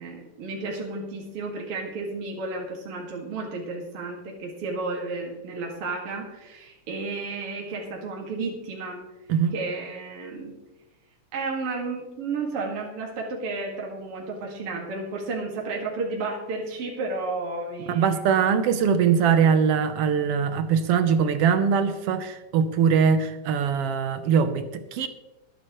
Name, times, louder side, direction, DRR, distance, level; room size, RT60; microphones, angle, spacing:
voice 1, 0.0-9.0 9.5-10.5 11.3-18.3, right 3 dB, 50° right, -1 dB, 2.7 m, -32 dB
voice 2, 17.9-25.1, right 7 dB, 75° right, 10 dB, 1.4 m, -22 dB
21.5 x 9.3 x 3.1 m, 1.0 s
omnidirectional pair, 3.5 m